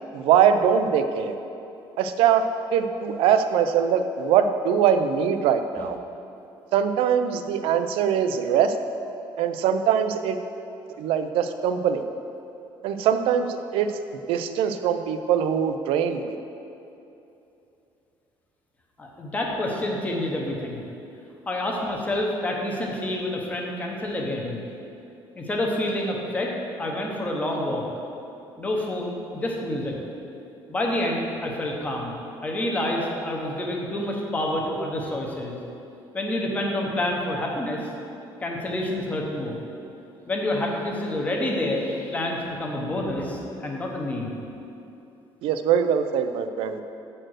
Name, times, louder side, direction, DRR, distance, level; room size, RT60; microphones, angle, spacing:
voice 1, 0.1-1.3 2.0-2.4 2.7-6.0 6.7-8.7 9.4-10.4 11.0-12.0 12.8-13.5 13.7-13.9 14.3-16.2 45.4-46.8, right 8 dB, 85° right, 9 dB, 0.5 m, -22 dB
voice 2, 19.0-20.8 21.5-24.6 25.4-27.8 28.6-30.0 30.7-32.1 32.4-35.6 36.1-37.9 38.4-39.6 40.3-44.3, left 1 dB, 15° left, -1 dB, 0.9 m, -28 dB
7.5 x 4.4 x 6.3 m, 2.9 s
cardioid pair, 175°, 9 cm